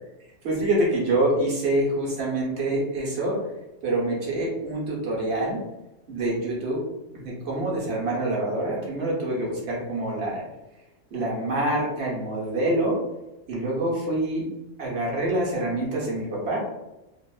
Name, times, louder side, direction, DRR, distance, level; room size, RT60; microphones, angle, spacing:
voice 1, 0.4-3.4 3.8-5.6 6.1-6.8 7.1-10.4 11.1-13.0 13.5-14.5 14.8-16.6, right 1 dB, 60° right, -4 dB, 1.0 m, -26 dB
2.8 x 2.0 x 2.3 m, 0.97 s
omnidirectional pair, 1.3 m